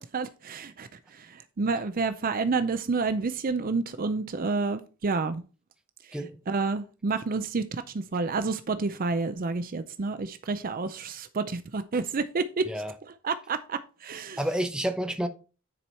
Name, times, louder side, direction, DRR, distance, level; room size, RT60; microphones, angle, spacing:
voice 1, 0.1-5.4 6.5-12.7 13.2-14.4, right 4 dB, 40° right, 0.5 m, -29 dB
voice 2, 14.4-15.3, equal, 5° right, 0.8 m, -29 dB
9.8 x 4.6 x 4.3 m
head